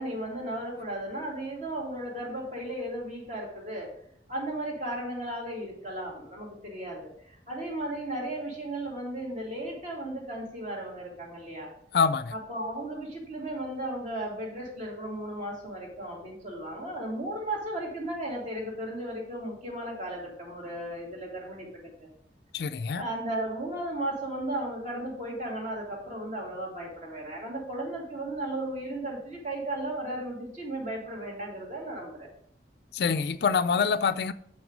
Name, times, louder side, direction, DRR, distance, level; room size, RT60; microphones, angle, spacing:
voice 1, 0.0-3.9 4.3-11.7 12.3-21.9 22.9-32.3, right 1 dB, 45° right, 2.6 m, -35 dB
voice 2, 11.9-12.3 22.5-23.0 32.9-34.3, left 5 dB, 65° left, 0.4 m, -25 dB
6.8 x 6.1 x 5.1 m
head